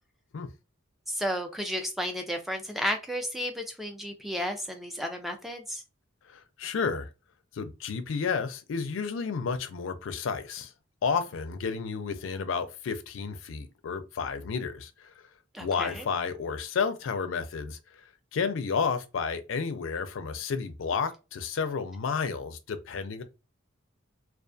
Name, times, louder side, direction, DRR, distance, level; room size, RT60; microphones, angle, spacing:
voice 1, 1.1-5.8 15.5-16.0, equal, ahead, 0.3 m, -33 dB
voice 2, 6.3-7.1 7.5-10.7 11.0-15.3 15.6-18.0 18.3-23.2, left 5 dB, 70° left, 0.4 m, -31 dB
2.3 x 2.3 x 2.4 m
head